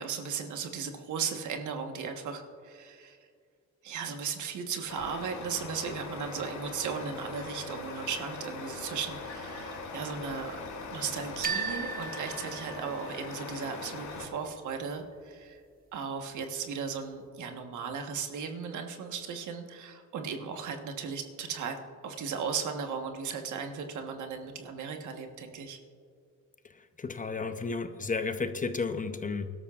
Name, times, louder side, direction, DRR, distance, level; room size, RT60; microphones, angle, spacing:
voice 1, 0.0-3.2 3.8-10.6 10.9-15.6 15.9-21.8 22.0-25.8, right 6 dB, 75° right, 4 dB, 1.3 m, -36 dB
Truck, 4.9-14.2, left 3 dB, 70° left, 2.6 m, -41 dB
sound 1, 11.4-13.4, right 4 dB, 30° right, 0.9 m, -36 dB
voice 2, 27.0-29.5, left 4 dB, 25° left, 9 dB, 0.7 m, -32 dB
21.5 x 12.5 x 2.5 m, 2.2 s
cardioid pair, 90°, 30 cm